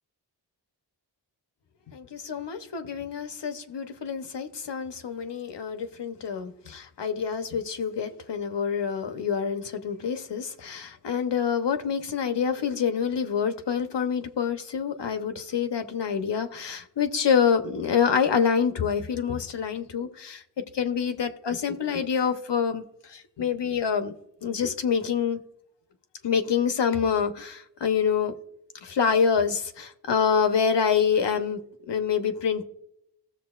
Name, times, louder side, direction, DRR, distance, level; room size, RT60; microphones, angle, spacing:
voice 1, 1.9-20.4 20.7-22.8 23.1-24.1 24.4-25.4 26.2-28.3 28.8-31.6 31.9-32.6, left 7 dB, 85° left, 1.0 m, -26 dB
16.0 x 7.0 x 2.4 m
wide cardioid pair, 110°, 41 cm